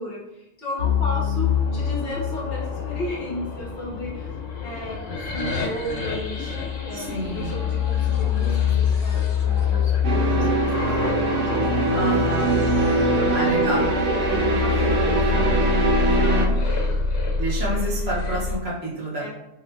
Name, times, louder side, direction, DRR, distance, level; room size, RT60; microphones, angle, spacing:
voice 1, 0.0-4.3 4.6-5.0 5.3-6.5 6.8-11.7 13.1-17.1 19.1-19.3, left 1 dB, 55° left, -4 dB, 0.9 m, -34 dB
sound 1, 0.8-18.6, left 6 dB, 85° left, 0.9 m, -25 dB
voice 2, 6.9-7.6 11.9-12.6 13.3-13.9 17.4-19.3, right 1 dB, 60° right, -5 dB, 1.1 m, -28 dB
sound 2, 10.0-16.5, right 2 dB, 85° right, 0.9 m, -22 dB
2.7 x 2.0 x 3.2 m, 0.89 s
omnidirectional pair, 1.2 m